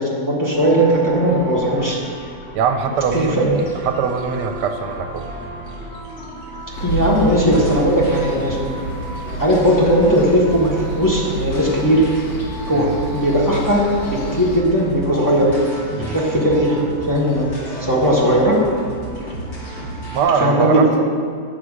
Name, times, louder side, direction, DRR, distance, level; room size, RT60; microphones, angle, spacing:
voice 1, 0.0-2.0 3.1-3.5 6.8-8.7 9.4-10.7 11.0-12.1 12.7-15.6 15.9-17.5 17.8-18.6 20.4-21.0, equal, 10° left, -6 dB, 1.2 m, -17 dB
sound 1, 0.5-20.2, right 1 dB, 40° left, 2.2 m, -32 dB
voice 2, 2.5-5.2 12.7-12.8 16.0-16.2 20.1-21.1, right 6 dB, 80° right, 6 dB, 1.2 m, -22 dB
sound 2, 6.7-14.6, right 1 dB, 85° left, 1.6 m, -30 dB
8.3 x 6.0 x 4.9 m, 2.3 s
omnidirectional pair, 1.8 m